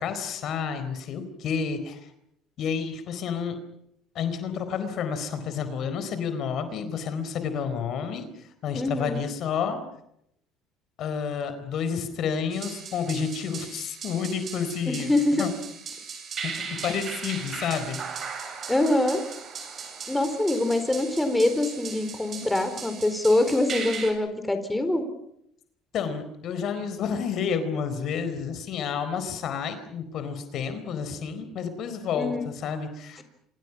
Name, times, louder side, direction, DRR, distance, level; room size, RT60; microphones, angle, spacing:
voice 1, 0.0-2.1 2.6-3.6 4.1-9.8 11.0-15.5 16.4-18.0 25.9-33.2, left 6 dB, 60° left, 10 dB, 4.3 m, -30 dB
voice 2, 8.7-9.2 14.9-15.5 18.7-19.2 20.1-25.0 32.1-32.5, left 2 dB, 10° left, 8 dB, 4.3 m, -24 dB
sound 1, 12.5-24.1, right 5 dB, 45° right, 7.7 m, -38 dB
28.0 x 26.5 x 6.1 m, 0.75 s
supercardioid pair, 80°, 0 cm